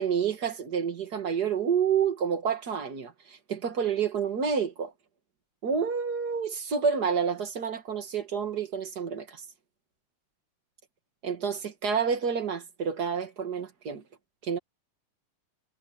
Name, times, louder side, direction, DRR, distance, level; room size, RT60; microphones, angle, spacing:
voice 1, 0.0-4.9 5.6-9.4 11.2-14.0 14.4-14.6, right 6 dB, 40° right, 1.5 m, -29 dB
omnidirectional pair, 3.9 m